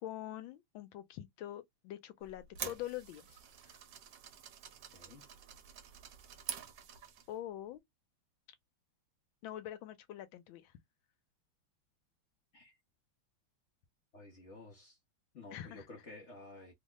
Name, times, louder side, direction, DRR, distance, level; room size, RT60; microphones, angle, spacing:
voice 1, 0.0-3.8 7.3-7.8 9.4-10.7 15.5-15.9, left 12 dB, 80° left, 1.4 m, -45 dB
sound 1, 2.2-7.3, right 8 dB, 65° right, 1.3 m, -47 dB
voice 2, 4.9-5.2 12.5-12.7 14.1-15.0 15.3-16.7, left 2 dB, 50° left, 0.9 m, -52 dB
3.4 x 2.1 x 3.6 m
omnidirectional pair, 2.2 m